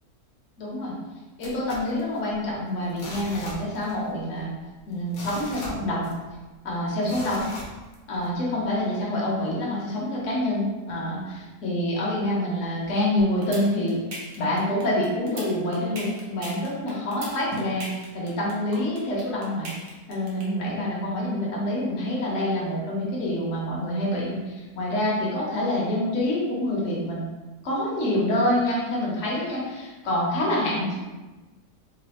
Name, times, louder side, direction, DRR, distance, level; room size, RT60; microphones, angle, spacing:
voice 1, 0.6-0.9 1.4-4.5 4.9-6.1 6.6-7.5 8.1-11.2 11.6-14.0 14.4-17.9 18.1-19.7 20.1-27.2 27.6-31.0, left 1 dB, 55° left, -5 dB, 1.2 m, -26 dB
sound 1, 1.4-2.5 2.9-4.1 4.4-4.5 4.9-6.4 7.0-8.3 8.8-8.9, left 1 dB, 90° left, 1.3 m, -40 dB
sound 2, 13.2-20.4, right 2 dB, 60° right, 1.2 m, -37 dB
3.9 x 2.4 x 2.9 m, 1.2 s
omnidirectional pair, 1.7 m